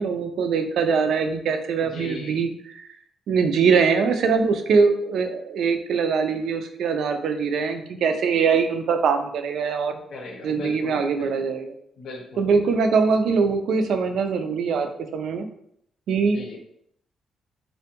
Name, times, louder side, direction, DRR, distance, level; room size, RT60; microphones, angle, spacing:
voice 1, 0.0-2.8 3.3-10.0 10.4-11.7 12.4-15.5 16.1-16.4, right 5 dB, 65° right, 7 dB, 0.3 m, -22 dB
voice 2, 1.8-2.6 10.1-11.4 12.0-12.7 16.3-16.6, left 3 dB, 55° left, 0 dB, 0.6 m, -38 dB
2.5 x 2.2 x 2.8 m, 0.70 s
cardioid pair, 160°, 0 cm